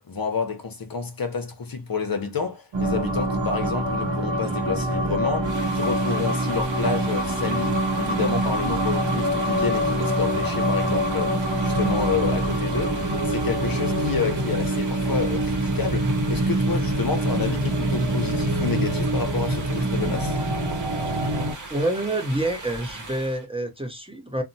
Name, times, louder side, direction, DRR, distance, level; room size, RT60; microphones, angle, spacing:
voice 1, 0.0-20.4, left 5 dB, 50° left, 0.7 m, -29 dB
sound 1, 2.7-21.5, right 1 dB, 65° right, 0.8 m, -25 dB
sound 2, 5.4-23.5, right 2 dB, 40° right, 1.0 m, -39 dB
voice 2, 21.7-24.4, right 1 dB, 10° right, 0.7 m, -27 dB
2.7 x 2.1 x 2.6 m
cardioid pair, 45°, 47 cm